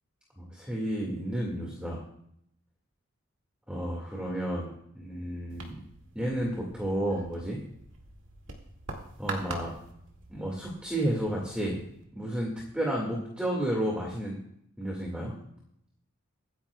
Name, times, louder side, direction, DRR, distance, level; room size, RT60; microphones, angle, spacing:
voice 1, 0.4-2.0 3.7-4.7 5.0-5.7 6.2-7.6 9.2-9.7 10.3-11.8 12.2-14.4 14.8-15.3, right 1 dB, 5° right, -3 dB, 2.0 m, -31 dB
sound 1, 5.5-12.0, right 2 dB, 60° right, 2.2 m, -44 dB
24.5 x 10.0 x 2.3 m, 0.73 s
head